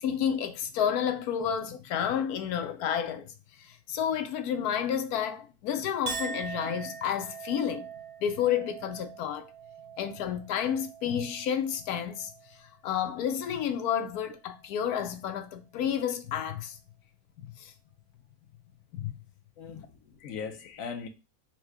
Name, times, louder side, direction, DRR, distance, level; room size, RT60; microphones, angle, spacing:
voice 1, 0.0-7.9 8.2-9.4 10.0-12.3 12.8-16.8 17.4-17.7 18.9-19.1 19.8-19.9, left 8 dB, 90° left, 1.2 m, -30 dB
Chink clink, 6.1-12.6 13.0-13.6, right 6 dB, 55° right, 0.9 m, -42 dB
voice 2, 19.6-21.1, left 6 dB, 65° left, 1.1 m, -39 dB
4.6 x 2.2 x 4.5 m
omnidirectional pair, 1.6 m